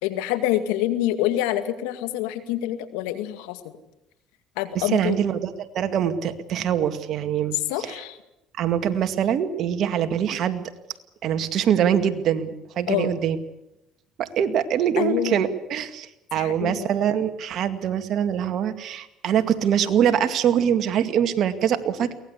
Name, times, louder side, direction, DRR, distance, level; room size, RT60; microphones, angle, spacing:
voice 1, 0.0-3.6 4.6-5.2 7.7-8.2 12.9-13.1 15.0-15.4 16.4-16.9, left 13 dB, 90° left, 10 dB, 2.2 m, -26 dB
voice 2, 4.7-8.0 8.6-10.6 11.2-13.4 14.2-22.2, right 9 dB, 60° right, 8 dB, 2.2 m, -24 dB
23.0 x 18.5 x 8.3 m, 0.89 s
supercardioid pair, 90°, 0 cm